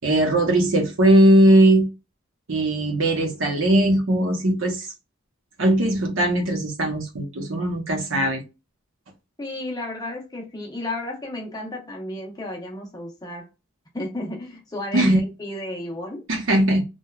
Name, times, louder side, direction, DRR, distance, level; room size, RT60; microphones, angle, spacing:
voice 1, 0.0-1.9 2.5-4.9 5.6-8.4 14.9-15.2 16.3-16.8, right 1 dB, 70° right, 0.7 m, -19 dB
voice 2, 9.4-13.5 13.9-16.3, left 1 dB, 20° left, 0.7 m, -33 dB
2.9 x 2.2 x 2.3 m
head